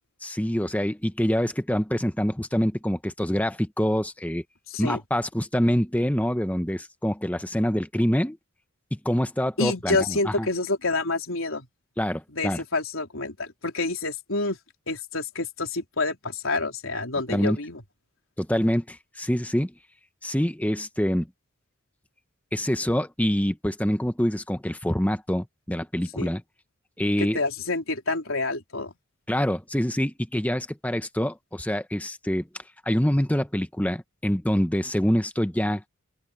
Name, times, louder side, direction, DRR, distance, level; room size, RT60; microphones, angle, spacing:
voice 1, 0.2-4.4 4.8-8.4 8.9-10.5 12.0-12.6 17.3-17.6 18.4-19.7 20.2-21.3 22.5-26.4 27.0-27.4 29.3-32.5 32.8-35.8, equal, 5° left, 1.0 m, -25 dB
voice 2, 4.7-5.0 9.6-11.7 12.3-14.6 14.9-17.8 26.2-26.3 27.2-28.9, left 3 dB, 75° left, 4.0 m, -28 dB
open air
head